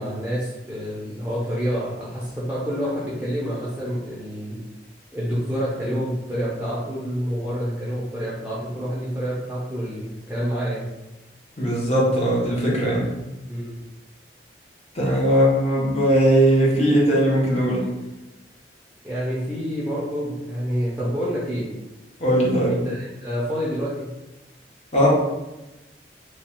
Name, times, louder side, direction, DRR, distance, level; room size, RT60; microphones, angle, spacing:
voice 1, 0.0-4.6 5.1-10.9 13.5-13.8 19.0-21.7 22.8-24.1, equal, 10° right, -8 dB, 0.6 m, -28 dB
voice 2, 11.6-13.1 14.9-17.9 22.2-22.8 24.9-25.1, equal, 35° left, -4 dB, 0.9 m, -19 dB
3.1 x 2.3 x 4.3 m, 1.0 s
head